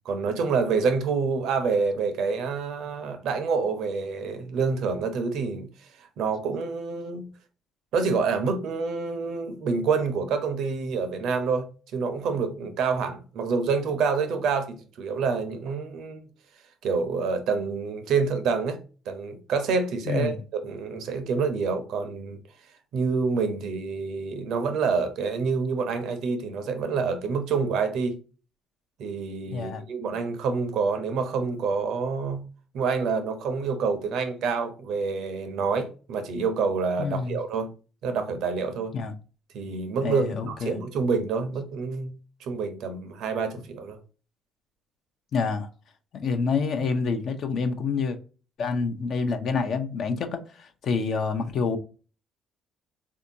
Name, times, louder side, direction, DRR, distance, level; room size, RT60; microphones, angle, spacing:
voice 1, 0.0-5.7 6.2-7.3 7.9-16.2 16.8-18.8 19.1-22.4 22.9-28.2 29.0-32.5 32.7-37.7 38.0-38.9 39.5-42.1 42.4-44.0, right 5 dB, 70° right, 0.7 m, -27 dB
voice 2, 29.5-29.8 37.0-37.4 38.9-39.1 40.0-40.8 45.3-45.7 46.1-48.2 48.6-51.8, left 5 dB, 60° left, 0.6 m, -27 dB
3.5 x 2.7 x 2.6 m
supercardioid pair, 70°, 0 cm